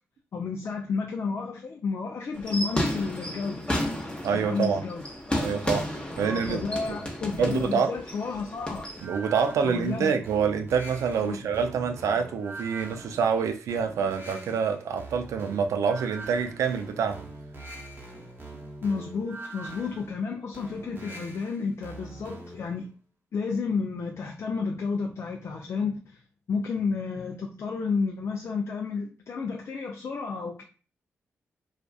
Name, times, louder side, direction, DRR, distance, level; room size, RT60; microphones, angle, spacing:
voice 1, 0.3-3.7 4.3-5.0 6.2-8.8 9.6-10.2 11.2-11.4 18.8-22.9 23.3-26.2 26.5-30.6, left 4 dB, 55° left, 3 dB, 0.4 m, -31 dB
sound 1, 2.3-9.0, left 1 dB, 20° left, 0.8 m, -32 dB
voice 2, 4.2-4.8 5.4-6.6 7.4-7.9 9.0-17.2, right 6 dB, 75° right, 7 dB, 0.3 m, -26 dB
sound 2, 9.0-22.8, right 2 dB, 45° right, 0.8 m, -43 dB
2.4 x 2.3 x 2.3 m, 0.37 s
supercardioid pair, 40°, 5 cm